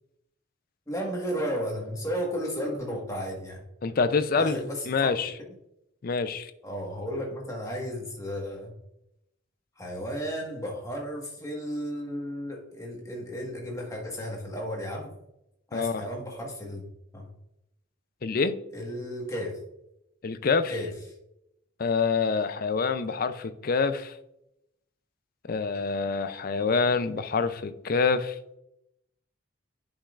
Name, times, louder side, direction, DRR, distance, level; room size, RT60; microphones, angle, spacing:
voice 1, 0.9-3.6 4.3-5.1 6.6-8.7 9.8-15.1 15.7-16.8 17.1-17.3 18.7-19.5 20.7-20.9, equal, 15° left, 1.4 m, -33 dB
voice 2, 3.8-4.6 4.9-5.3 6.0-6.5 15.7-16.0 18.2-18.6 20.2-20.7 21.8-24.1 25.5-28.4, left 4 dB, 45° left, 0.4 m, -26 dB
10.0 x 5.4 x 2.4 m
head